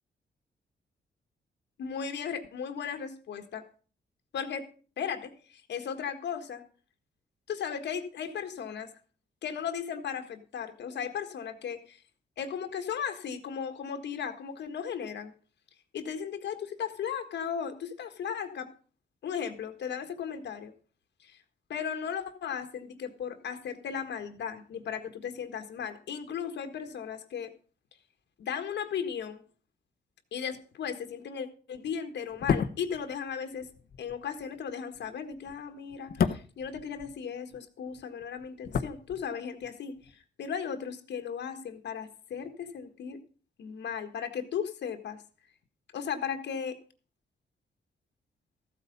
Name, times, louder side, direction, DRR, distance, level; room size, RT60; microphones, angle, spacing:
voice 1, 1.8-3.7 4.3-4.7 5.0-6.6 7.5-8.9 9.4-12.0 12.4-15.3 15.9-18.7 19.2-20.7 21.2-21.4 21.7-27.5 28.4-29.4 30.3-33.7 34.0-43.2 43.6-45.2 45.9-46.8, left 7 dB, 80° left, 7 dB, 1.6 m, -36 dB
sound 1, 32.3-37.6 37.9-39.7 40.0-40.1, left 7 dB, 60° left, 0.9 m, -33 dB
14.0 x 8.4 x 5.3 m, 0.39 s
cardioid pair, 120°, 18 cm